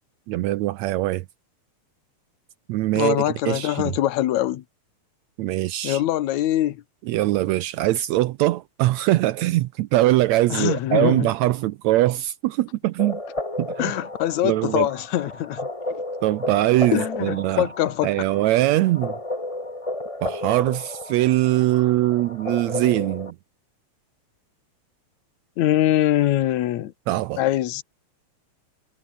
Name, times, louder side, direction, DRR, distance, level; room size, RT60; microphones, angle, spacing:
voice 1, 0.3-1.3 2.7-3.9 5.4-6.0 7.1-13.2 13.6-13.9 14.4-14.9 16.2-17.7 18.0-19.2 20.2-23.4 27.1-27.4, right 16 dB, 80° right, 1.9 m, -22 dB
voice 2, 2.9-4.6 5.8-6.8 10.5-11.3 13.8-15.6 16.9-18.1 25.6-26.9 27.4-27.8, left 13 dB, 75° left, 2.5 m, -23 dB
sound 1, 13.0-23.3, left 1 dB, 10° left, 2.8 m, -33 dB
omnidirectional pair, 3.3 m